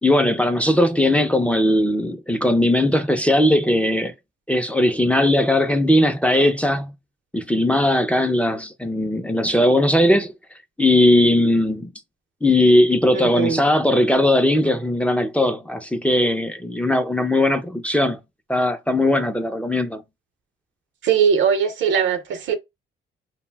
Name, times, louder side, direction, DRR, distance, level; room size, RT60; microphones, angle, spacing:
voice 1, 0.0-4.1 4.5-6.9 7.3-10.3 10.8-11.9 12.4-18.2 18.5-20.0, left 1 dB, 5° left, 0.4 m, -19 dB
voice 2, 13.1-13.6 21.0-22.5, right 7 dB, 75° right, 0.7 m, -20 dB
2.5 x 2.1 x 3.2 m
cardioid pair, 90°, 20 cm